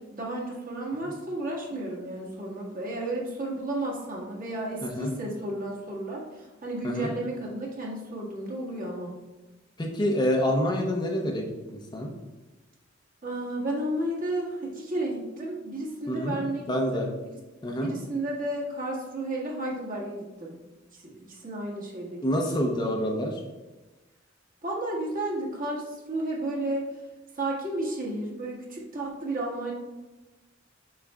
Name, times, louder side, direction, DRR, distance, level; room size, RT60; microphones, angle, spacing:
voice 1, 0.0-9.1 13.2-17.1 17.8-20.6 20.9-22.3 24.6-26.9 27.4-29.7, right 1 dB, 45° right, -3 dB, 1.6 m, -32 dB
voice 2, 4.8-5.1 6.8-7.1 9.8-11.4 11.7-12.1 16.1-16.4 16.7-17.1 17.6-17.9 22.2-23.4, equal, 20° left, 0 dB, 0.7 m, -27 dB
7.3 x 5.5 x 2.4 m, 1.1 s
head